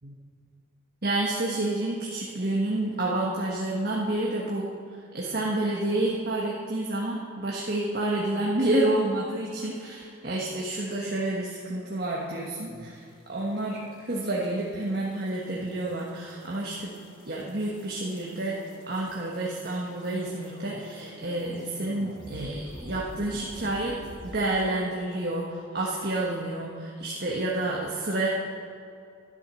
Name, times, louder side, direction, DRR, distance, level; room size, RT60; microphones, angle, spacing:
voice 1, 1.0-4.7 5.1-13.0 13.3-16.9 17.3-18.6 18.9-24.0 24.2-28.3, right 2 dB, 50° right, -3 dB, 1.4 m, -29 dB
sound 1, 12.2-24.4, equal, 25° left, 2.6 m, -48 dB
11.5 x 11.5 x 6.3 m, 2.4 s
head